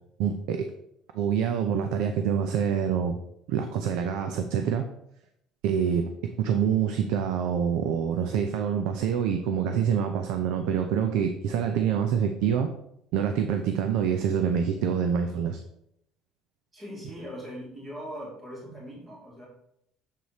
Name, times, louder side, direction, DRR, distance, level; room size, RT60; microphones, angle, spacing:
voice 1, 0.2-0.7 1.1-3.2 3.5-4.9 5.6-12.7 13.1-15.6, right 8 dB, 80° right, 6 dB, 0.6 m, -26 dB
voice 2, 16.7-19.5, equal, 15° right, -5 dB, 2.6 m, -40 dB
7.5 x 4.1 x 4.9 m, 0.77 s
cardioid pair, 140°, 0 cm